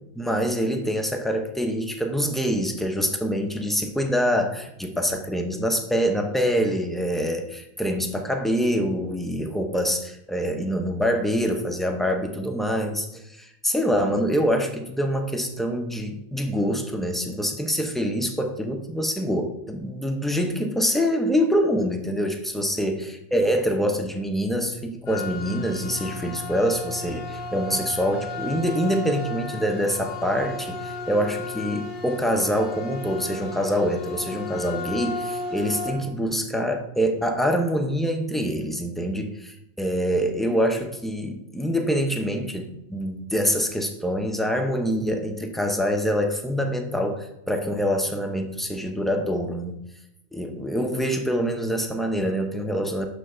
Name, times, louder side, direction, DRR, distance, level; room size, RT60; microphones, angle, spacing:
voice 1, 0.2-49.8 50.3-53.1, equal, ahead, 4 dB, 0.4 m, -25 dB
sound 1, 25.1-35.9, left 3 dB, 45° left, 1.0 m, -34 dB
9.7 x 3.4 x 6.6 m, 0.87 s
omnidirectional pair, 1.3 m